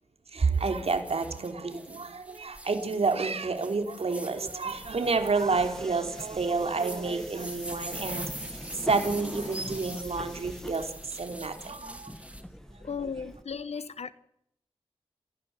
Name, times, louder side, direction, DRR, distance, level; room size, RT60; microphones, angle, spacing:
voice 1, 0.3-8.5 8.8-12.1, right 4 dB, 70° right, 3.3 m, -29 dB
sound 1, 0.5-12.4, right 1 dB, 10° right, 3.0 m, -44 dB
Subway metro underground, 4.7-13.4, equal, 5° left, 2.0 m, -43 dB
voice 2, 12.8-14.1, left 6 dB, 80° left, 1.1 m, -35 dB
27.5 x 16.0 x 7.9 m
cardioid pair, 50°, 11 cm